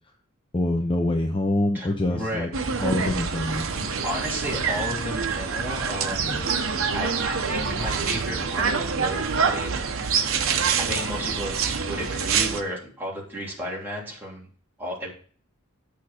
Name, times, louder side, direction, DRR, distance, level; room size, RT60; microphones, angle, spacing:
voice 1, 0.5-2.5 2.8-3.7 6.2-6.4, left 1 dB, 25° left, 4 dB, 0.7 m, -25 dB
voice 2, 1.7-2.5 4.0-6.4 6.9-10.5 10.8-14.5 14.8-15.1, equal, 10° right, -4 dB, 3.1 m, -33 dB
sound 1, 2.5-12.6, right 5 dB, 65° right, 0.9 m, -26 dB
8.9 x 6.7 x 4.3 m, 0.43 s
head